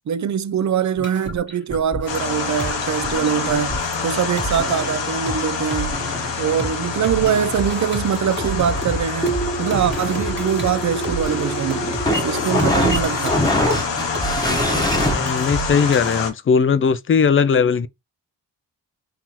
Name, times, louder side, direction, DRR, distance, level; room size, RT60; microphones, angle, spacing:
voice 1, 0.1-5.9 6.4-11.9 12.2-13.4, right 8 dB, 45° right, 0.4 m, -23 dB
sound 1, 1.0-5.4 5.7-6.7 7.0-16.2, right 1 dB, 25° right, 1.3 m, -30 dB
sound 2, 2.1-16.3, left 5 dB, 75° left, 1.0 m, -27 dB
sound 3, 9.2-15.1, equal, 10° left, 1.0 m, -23 dB
voice 2, 15.1-17.9, left 6 dB, 30° left, 0.4 m, -18 dB
3.8 x 2.8 x 3.0 m
cardioid pair, 60°, 43 cm